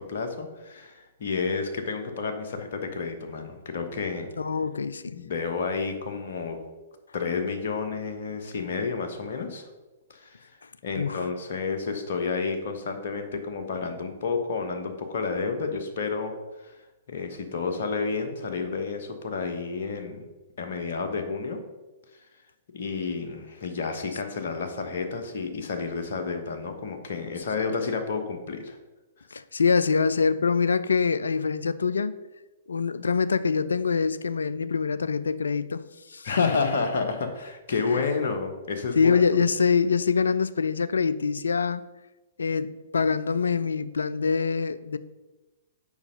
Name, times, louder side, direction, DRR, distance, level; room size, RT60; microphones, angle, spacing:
voice 1, 0.0-4.3 5.1-6.6 7.1-9.7 10.1-10.5 10.8-16.3 16.6-16.7 17.1-20.3 20.6-21.6 22.7-28.8 36.2-39.2, left 4 dB, 55° left, 1.2 m, -30 dB
voice 2, 4.4-5.2 11.0-11.2 27.6-27.7 29.3-32.1 32.7-35.8 36.1-36.6 37.9-38.0 39.0-41.8 42.4-45.0, left 5 dB, 70° left, 0.4 m, -25 dB
7.1 x 5.4 x 5.2 m
figure-of-eight pair, 115°, 0 cm